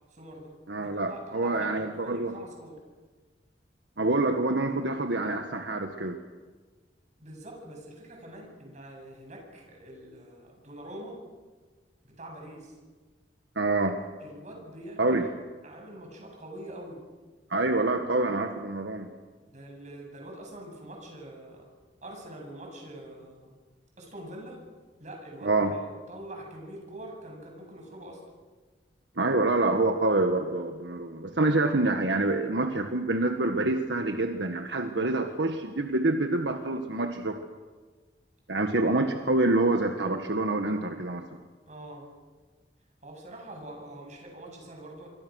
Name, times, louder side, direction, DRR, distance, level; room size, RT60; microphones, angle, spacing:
voice 1, 0.1-2.8 7.2-11.2 12.0-12.8 14.2-15.2 15.6-17.0 19.5-21.6 22.0-23.5 24.0-24.6 25.0-28.2 41.7-42.1 43.0-45.1, right 1 dB, 45° right, 1 dB, 8.0 m, -44 dB
voice 2, 0.7-2.3 4.0-6.2 13.5-14.0 15.0-15.2 17.5-19.1 25.4-25.7 29.2-37.4 38.5-41.2, right 2 dB, 80° right, 5 dB, 1.6 m, -26 dB
27.0 x 24.0 x 6.5 m, 1.4 s
head